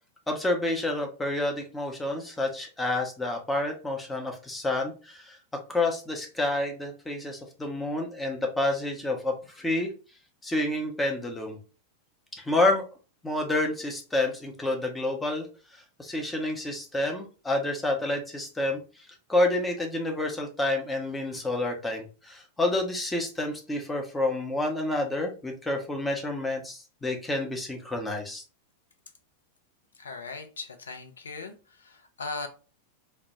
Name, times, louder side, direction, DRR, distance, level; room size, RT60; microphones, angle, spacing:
voice 1, 0.3-5.4 5.7-9.9 10.4-11.6 12.4-12.9 13.2-15.5 15.7-18.8 19.3-28.4, left 2 dB, 10° left, 2 dB, 0.6 m, -29 dB
voice 2, 30.0-31.5 31.8-32.5, left 3 dB, 70° left, 6 dB, 0.4 m, -38 dB
2.1 x 2.1 x 2.9 m, 0.34 s
figure-of-eight pair, 90°, 0 cm